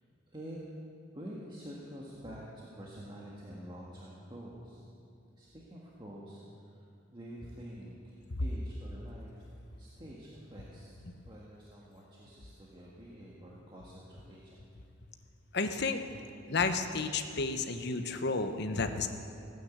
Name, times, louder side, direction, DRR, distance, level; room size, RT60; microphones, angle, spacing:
voice 1, 0.3-0.6 1.1-4.8 5.4-6.8 7.1-9.4 9.8-11.0 11.3-14.6, equal, 25° right, -5 dB, 1.6 m, -47 dB
voice 2, 15.5-16.0 16.5-19.1, left 4 dB, 60° left, 7 dB, 1.0 m, -32 dB
16.5 x 9.2 x 8.1 m, 2.5 s
head